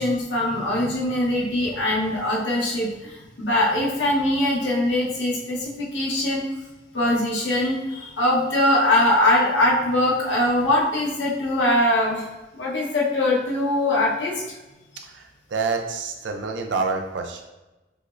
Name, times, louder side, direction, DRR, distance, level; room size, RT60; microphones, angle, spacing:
voice 1, 0.0-6.4 6.9-12.3 12.5-14.4, left 1 dB, 80° left, -4 dB, 0.9 m, -22 dB
voice 2, 15.0-17.4, right 4 dB, 80° right, 4 dB, 0.4 m, -28 dB
4.9 x 2.0 x 2.5 m, 1.1 s
head